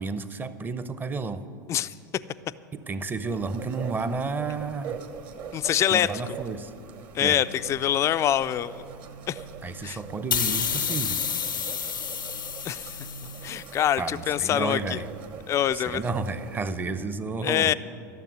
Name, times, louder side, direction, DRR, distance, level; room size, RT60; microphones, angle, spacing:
voice 1, 0.0-1.5 2.7-5.0 5.9-6.7 7.2-7.4 9.6-11.2 14.0-15.1 15.7-17.7, right 4 dB, 20° right, 13 dB, 0.7 m, -31 dB
sound 1, 3.3-16.7, right 7 dB, 45° right, 1.2 m, -43 dB
voice 2, 5.5-6.1 7.1-8.8 9.3-9.4 9.8-10.0 12.6-12.9 13.4-15.0 15.5-16.0 17.4-17.7, left 11 dB, 30° left, 13 dB, 0.3 m, -25 dB
sound 2, 7.0-15.4, right 2 dB, 80° right, 0.9 m, -48 dB
sound 3, 10.3-13.7, left 7 dB, 85° left, 0.7 m, -29 dB
12.5 x 7.2 x 9.3 m, 2.5 s
hypercardioid pair, 90°, 11 cm